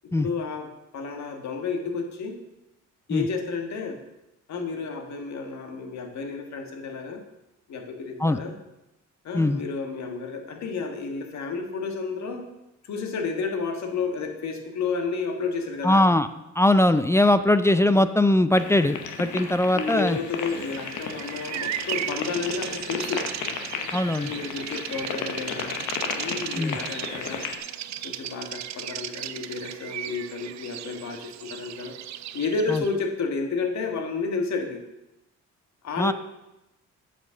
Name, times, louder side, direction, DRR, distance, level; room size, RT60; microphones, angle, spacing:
voice 1, 0.2-0.7 0.9-2.4 3.1-4.0 4.5-7.2 7.7-8.6 9.2-12.4 12.8-16.1 19.7-23.3 24.1-25.8 26.1-27.4 28.0-32.0 32.3-34.8 35.8-36.1, left 4 dB, 65° left, 4 dB, 1.6 m, -31 dB
voice 2, 15.8-16.3 16.6-20.2 23.9-24.3 26.6-26.8 32.7-32.8 36.0-36.1, left 1 dB, 10° left, 12 dB, 0.4 m, -21 dB
sound 1, 18.5-27.6, left 6 dB, 90° left, 1.1 m, -34 dB
Bird vocalization bird call bird song, 20.3-33.0, right 12 dB, 65° right, 0.5 m, -36 dB
7.6 x 5.6 x 6.3 m, 0.93 s
cardioid pair, 90°, 30 cm